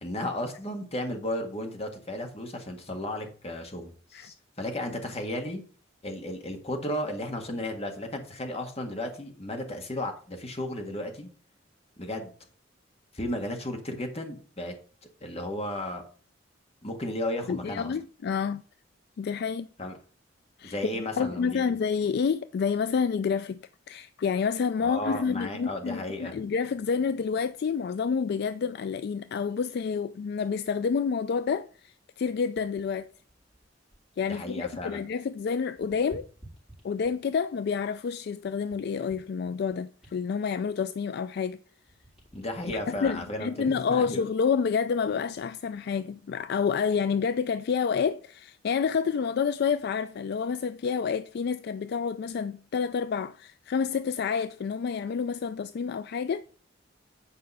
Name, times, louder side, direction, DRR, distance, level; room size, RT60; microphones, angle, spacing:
voice 1, 0.0-5.6 6.0-11.3 12.0-12.3 13.1-14.7 15.2-16.0 16.8-17.9 19.8-20.0 20.6-21.7 24.8-26.4 34.2-35.0 42.3-44.2, left 1 dB, 35° left, 1.7 m, -34 dB
voice 2, 17.5-18.6 19.2-19.7 20.6-20.8 21.2-33.1 34.2-36.3 36.8-41.6 42.9-56.4, left 6 dB, 60° left, 0.3 m, -29 dB
sound 1, 32.2-35.0 35.3-37.4 38.0-41.5 41.8-44.6 45.2-45.4, right 1 dB, 5° right, 3.9 m, -55 dB
8.7 x 5.2 x 5.5 m
head